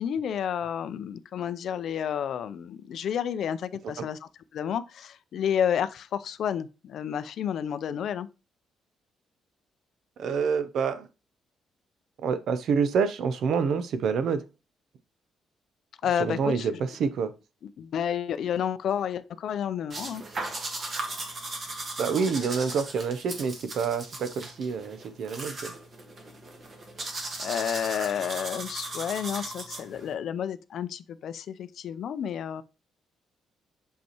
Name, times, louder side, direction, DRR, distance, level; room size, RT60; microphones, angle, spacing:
voice 1, 0.0-4.2 4.5-8.3 16.0-16.7 17.8-20.2 27.4-32.6, left 8 dB, 55° left, 0.5 m, -30 dB
voice 2, 10.2-11.1 12.2-14.4 16.2-17.3 22.0-25.7, right 6 dB, 60° right, 0.7 m, -27 dB
sound 1, 19.9-30.1, right 2 dB, 35° right, 1.5 m, -37 dB
6.7 x 5.3 x 3.0 m
cardioid pair, 165°, 0 cm